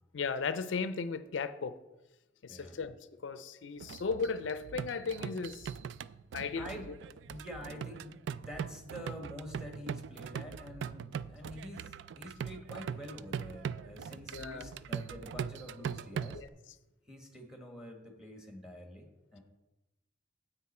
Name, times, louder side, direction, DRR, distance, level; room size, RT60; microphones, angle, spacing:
voice 1, 0.1-1.7 2.4-2.9 3.2-5.7 6.3-6.9 14.3-14.7 16.3-16.5, left 5 dB, 70° left, 0.4 m, -36 dB
voice 2, 2.5-2.8 6.5-6.9 7.3-16.4 17.0-19.4, equal, 5° right, 1.5 m, -47 dB
sound 1, 3.8-16.5, right 7 dB, 65° right, 0.3 m, -41 dB
9.5 x 8.0 x 4.3 m
head